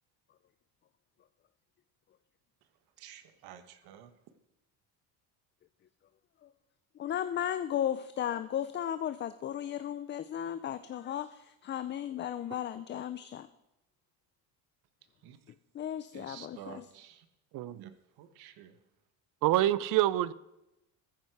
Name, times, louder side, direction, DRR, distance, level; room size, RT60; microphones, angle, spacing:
voice 1, 3.0-4.1 15.2-15.4 16.1-17.2 17.8-17.9 18.2-18.7, right 10 dB, 75° right, 1.3 m, -50 dB
voice 2, 7.0-13.5 15.7-16.9, left 10 dB, 30° left, 0.4 m, -35 dB
voice 3, 17.5-17.9 19.4-20.3, right 14 dB, 55° right, 0.6 m, -26 dB
14.0 x 9.7 x 4.7 m
cardioid pair, 125°, 38 cm